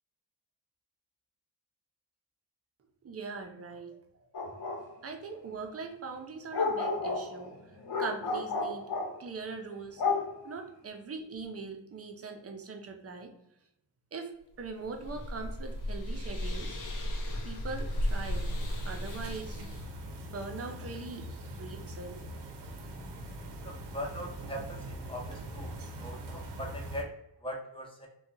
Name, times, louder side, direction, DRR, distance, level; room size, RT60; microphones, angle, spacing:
voice 1, 3.0-4.0 5.0-7.6 8.0-8.9 9.2-10.0 10.4-13.3 14.1-14.3 14.6-16.8 17.4-18.4 18.8-19.6 20.3-21.3 21.6-22.2, right 4 dB, 35° right, 4 dB, 0.6 m, -41 dB
sound 1, 4.3-4.8 6.5-9.1 10.0-10.4, left 3 dB, 65° left, 1.0 m, -31 dB
sound 2, 14.6-19.9, left 1 dB, 50° left, 0.6 m, -35 dB
sound 3, 17.5-27.0, right 1 dB, 75° right, 0.7 m, -43 dB
voice 2, 23.6-25.7 26.0-27.1 27.4-28.1, equal, 15° left, 0 dB, 0.7 m, -40 dB
2.7 x 2.3 x 3.7 m, 0.82 s
wide cardioid pair, 115°, 41 cm